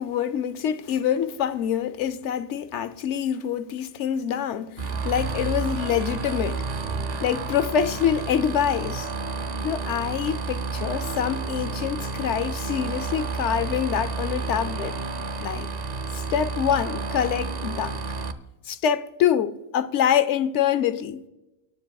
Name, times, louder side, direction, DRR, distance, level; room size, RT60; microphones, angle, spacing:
voice 1, 0.0-6.6 7.2-9.1 9.6-15.0 15.4-15.7 16.1-18.0 18.7-21.3, left 9 dB, 90° left, 1.0 m, -25 dB
sound 1, 4.8-18.3, right 4 dB, 45° right, 0.7 m, -30 dB
25.0 x 9.7 x 2.3 m
omnidirectional pair, 1.2 m